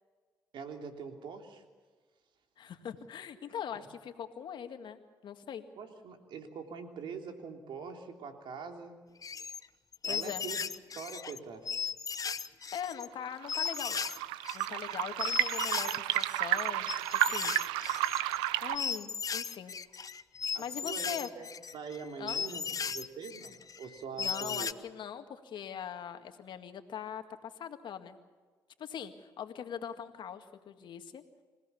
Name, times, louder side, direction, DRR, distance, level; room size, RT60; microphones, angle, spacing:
voice 1, 0.5-1.6 3.7-3.8 5.8-9.0 10.0-10.6 10.9-11.7 20.5-21.5 21.7-24.8, right 6 dB, 70° right, 4 dB, 3.4 m, -44 dB
voice 2, 2.6-5.7 10.1-10.4 12.7-14.2 14.5-17.5 18.2-19.8 20.6-21.3 22.2-22.4 24.2-28.2 28.8-31.2, left 8 dB, 65° left, 7 dB, 2.0 m, -42 dB
sound 1, 9.2-9.7 9.9-11.4 11.7-13.1 13.5-14.2 14.4-24.7, left 6 dB, 45° left, 1.0 m, -37 dB
sound 2, 13.1-18.8, right 15 dB, 90° right, 0.7 m, -32 dB
27.0 x 17.0 x 7.1 m, 1.4 s
supercardioid pair, 55°, 8 cm